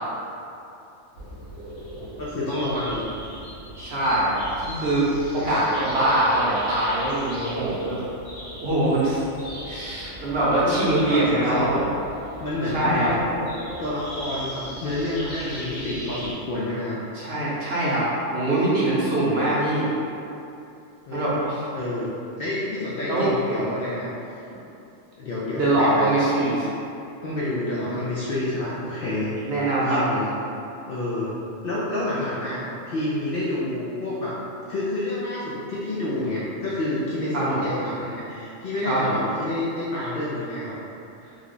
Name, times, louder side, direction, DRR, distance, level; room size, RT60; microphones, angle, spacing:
sound 1, 1.1-16.3, equal, 90° left, 1.3 m, -38 dB
voice 1, 2.0-3.0 5.3-5.5 10.6-11.2 11.5-11.9 12.4-13.4 13.8-17.0 21.1-21.3 21.7-24.1 25.2-26.2 27.2-29.5 29.8-30.3 30.9-34.4 34.7-40.8, left 1 dB, 60° left, -8 dB, 0.6 m, -28 dB
voice 2, 3.8-5.1 5.3-8.0 8.6-9.2 9.7-11.8 12.7-13.1 17.1-19.9 21.1-21.6 23.1-23.3 25.5-26.7 29.5-30.0 37.3-37.6 38.8-39.2, right 1 dB, 55° right, -7 dB, 0.8 m, -23 dB
3.2 x 2.2 x 3.8 m, 2.8 s
omnidirectional pair, 1.4 m